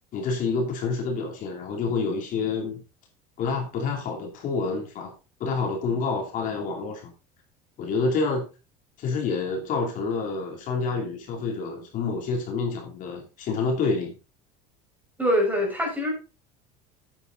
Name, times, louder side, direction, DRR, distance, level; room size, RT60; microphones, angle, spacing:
voice 1, 0.1-2.8 3.4-5.1 5.4-7.1 7.8-8.5 9.0-14.1, left 4 dB, 50° left, 1 dB, 2.8 m, -28 dB
voice 2, 15.2-16.1, equal, 10° right, 0 dB, 5.1 m, -23 dB
9.0 x 8.1 x 3.8 m, 0.31 s
cardioid pair, 130°, 18 cm